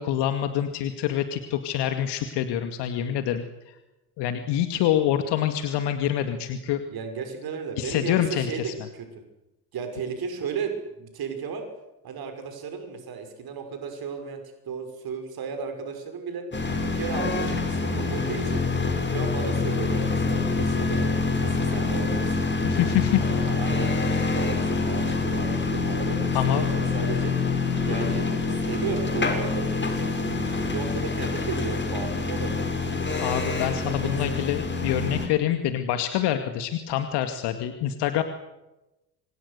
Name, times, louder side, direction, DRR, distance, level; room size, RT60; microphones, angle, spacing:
voice 1, 0.0-3.4 4.2-6.8 7.8-8.7 22.6-23.2 26.3-26.6 33.2-38.2, left 11 dB, 55° left, 8 dB, 2.3 m, -26 dB
voice 2, 6.9-9.1 9.7-11.6 12.0-16.4 16.8-18.6 19.1-22.5 23.2-33.2 33.8-34.4, right 5 dB, 45° right, 6 dB, 6.0 m, -35 dB
sound 1, 16.5-35.3, left 4 dB, 20° left, 7.4 m, -26 dB
29.5 x 26.0 x 6.8 m, 0.97 s
figure-of-eight pair, 55°, 49 cm